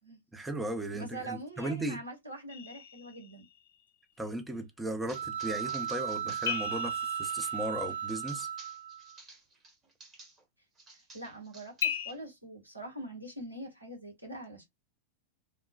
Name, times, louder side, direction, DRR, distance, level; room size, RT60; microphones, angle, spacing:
voice 1, 0.3-2.0 4.2-8.5, right 1 dB, 10° right, 0.6 m, -36 dB
voice 2, 0.9-3.4 10.9-14.7, right 1 dB, 85° right, 1.3 m, -44 dB
sound 1, 2.5-3.8 6.4-8.5 11.8-12.1, left 9 dB, 60° left, 0.5 m, -37 dB
sound 2, 5.1-10.4 10.8-12.2, right 3 dB, 25° right, 1.1 m, -53 dB
sound 3, 5.1-9.2, right 9 dB, 55° right, 0.4 m, -36 dB
3.1 x 2.1 x 2.2 m
figure-of-eight pair, 90°, 0 cm